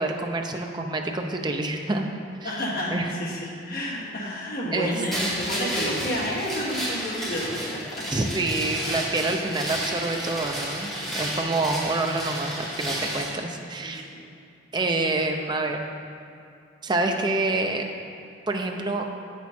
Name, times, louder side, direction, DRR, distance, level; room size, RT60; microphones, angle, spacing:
voice 1, 0.0-2.1 2.4-2.5 2.9-3.1 4.7-5.0 8.1-14.1 14.7-15.8 16.8-17.9 18.5-19.0, right 2 dB, 25° right, 3 dB, 0.5 m, -27 dB
voice 2, 2.4-8.1 13.8-14.2, equal, 50° left, -4 dB, 1.4 m, -30 dB
sound 1, 5.1-13.3, equal, ahead, 1.7 m, -31 dB
8.2 x 6.2 x 4.3 m, 2.5 s
head